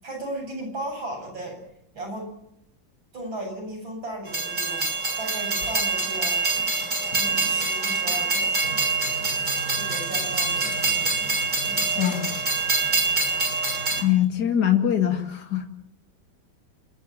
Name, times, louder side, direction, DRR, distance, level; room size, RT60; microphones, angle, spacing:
voice 1, 0.0-1.6 1.9-2.3 3.1-4.9 5.2-6.4 7.1-8.8 9.7-11.2 11.6-12.4, right 1 dB, 80° right, 2 dB, 8.8 m, -36 dB
Train, 4.3-14.0, right 3 dB, 25° right, 3.4 m, -25 dB
Drum, 8.6-14.2, right 1 dB, 50° right, 4.4 m, -41 dB
voice 2, 12.0-12.3 14.0-15.7, left 10 dB, 55° left, 5 dB, 2.8 m, -22 dB
28.0 x 15.5 x 7.3 m, 0.76 s
omnidirectional pair, 2.1 m